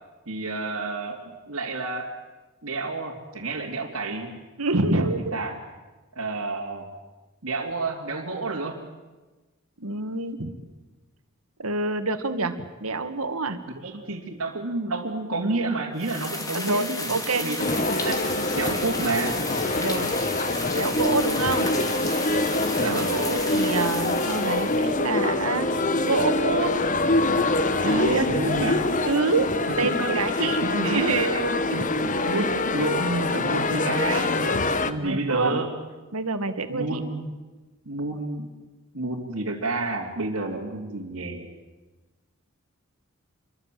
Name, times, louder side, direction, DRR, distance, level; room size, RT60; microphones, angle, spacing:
voice 1, 0.3-2.1 2.6-4.3 4.9-5.6 6.1-6.9 7.4-8.8 13.7-17.7 18.0-19.4 22.7-23.1 28.3-28.8 29.8-31.0 31.7-31.9 32.2-35.7 36.7-37.3 37.8-38.5 38.9-41.5, right 2 dB, 70° right, -4 dB, 2.9 m, -30 dB
voice 2, 4.6-5.4 9.8-10.5 11.6-12.5 12.8-13.6 16.5-17.5 19.8-20.1 20.8-21.7 22.8-26.9 27.8-28.4 29.0-29.5 29.8-30.6 30.8-32.2 34.0-34.1 35.0-35.5 36.1-37.0, right 3 dB, 90° right, 8 dB, 2.1 m, -27 dB
sound 1, 16.0-25.0, left 2 dB, 15° left, 2.7 m, -33 dB
sound 2, 17.6-34.9, left 2 dB, 35° left, 1.2 m, -25 dB
27.5 x 23.0 x 7.8 m, 1.2 s
head